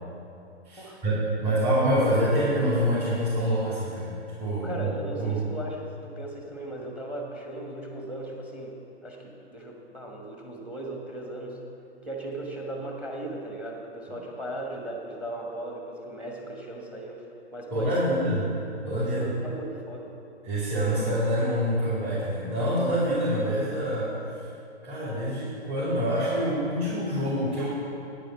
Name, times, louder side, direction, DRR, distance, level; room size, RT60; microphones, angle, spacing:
voice 1, 0.6-4.1 4.4-4.7 5.1-5.4 17.7-18.4 18.8-19.3 20.4-24.5 24.8-27.7, equal, 25° right, -10 dB, 3.0 m, -26 dB
voice 2, 4.5-8.8 9.0-11.6 12.0-17.2 17.5-18.2 19.0-20.1, right 1 dB, 5° right, 1 dB, 1.2 m, -37 dB
9.1 x 8.9 x 5.9 m, 2.6 s
figure-of-eight pair, 125°, 34 cm